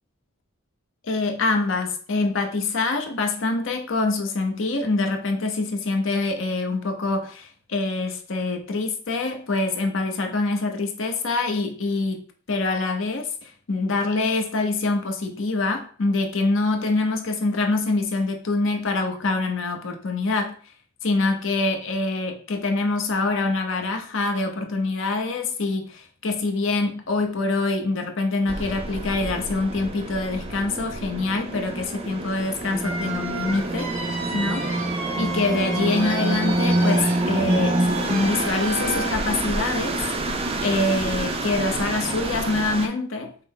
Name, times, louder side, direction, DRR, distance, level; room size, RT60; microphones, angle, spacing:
voice 1, 1.0-12.2 12.5-20.5 21.0-33.9 34.3-34.8 35.2-40.0 40.6-43.3, left 3 dB, 70° left, 4 dB, 0.7 m, -25 dB
sound 1, 28.5-42.9, right 2 dB, 30° right, 0.4 m, -27 dB
sound 2, 32.8-39.1, right 2 dB, 80° right, 1.1 m, -33 dB
5.6 x 2.0 x 3.7 m, 0.43 s
head